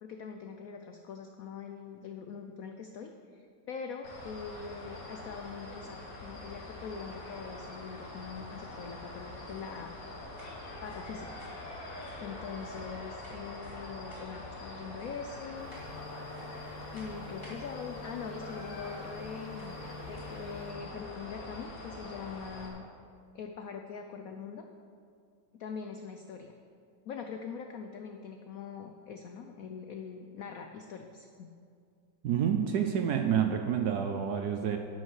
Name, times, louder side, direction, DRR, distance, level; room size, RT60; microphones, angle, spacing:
voice 1, 0.0-9.9 10.8-11.4 12.2-15.7 16.9-19.8 20.1-22.8 23.3-24.6 25.6-26.5 27.1-31.5, left 6 dB, 80° left, 5 dB, 0.7 m, -43 dB
sound 1, 4.0-22.7, left 2 dB, 50° left, 1.6 m, -44 dB
sound 2, 10.3-12.9 13.2-13.8 14.1-14.6 15.0-15.3 15.7-16.0 16.3-16.7 16.9-17.6 18.8-18.9 19.5-19.8 20.1-20.4, equal, 15° left, 2.6 m, -57 dB
sound 3, 15.5-20.7, left 3 dB, 15° right, 2.0 m, -48 dB
voice 2, 32.2-34.8, right 8 dB, 70° right, 5 dB, 1.0 m, -28 dB
11.0 x 6.3 x 6.4 m, 2.4 s
omnidirectional pair, 2.2 m